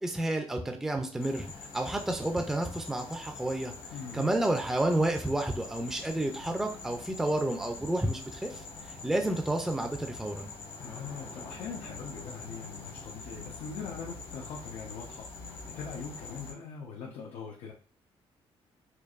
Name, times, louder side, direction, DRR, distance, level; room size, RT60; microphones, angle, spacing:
voice 1, 0.0-3.7 4.1-10.5, right 1 dB, 5° right, 4 dB, 0.4 m, -30 dB
sound 1, 1.2-16.5, left 3 dB, 60° left, 1.0 m, -45 dB
voice 2, 3.9-4.3 10.8-17.7, left 6 dB, 90° left, -2 dB, 0.7 m, -42 dB
4.5 x 2.5 x 2.4 m, 0.39 s
cardioid pair, 125°, 10 cm